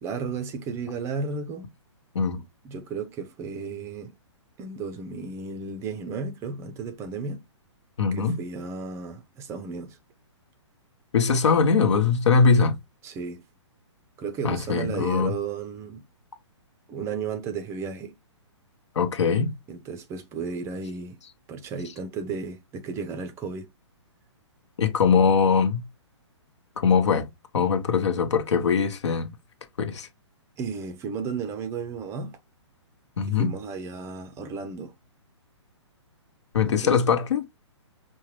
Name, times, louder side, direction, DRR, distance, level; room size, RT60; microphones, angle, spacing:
voice 1, 0.0-1.7 2.6-4.1 4.6-7.4 8.1-10.0 13.0-13.4 14.2-16.0 16.9-18.1 19.7-21.2 21.5-23.7 30.6-32.4 33.3-34.9 36.7-37.0, right 5 dB, 15° right, 0.5 m, -34 dB
voice 2, 8.0-8.4 11.1-12.8 14.4-15.3 18.9-19.5 24.8-25.8 26.8-27.3 27.5-29.3 29.8-30.1 33.2-33.5 36.5-37.4, left 5 dB, 70° left, 1.0 m, -21 dB
5.6 x 2.2 x 3.1 m
hypercardioid pair, 135°, 16 cm